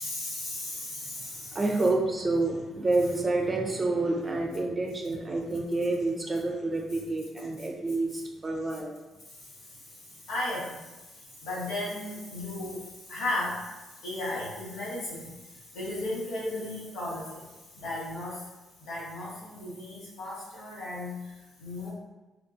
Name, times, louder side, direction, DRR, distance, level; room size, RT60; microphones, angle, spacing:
voice 1, 0.0-1.6 10.3-10.9 11.4-13.7 14.0-15.3 15.7-17.5 17.7-18.4 18.8-21.2 21.6-21.9, left 1 dB, 90° left, -7 dB, 1.2 m, -35 dB
voice 2, 1.5-9.0, right 2 dB, 30° right, 1 dB, 0.5 m, -28 dB
3.5 x 2.4 x 2.6 m, 1.1 s
cardioid pair, 90°, 0 cm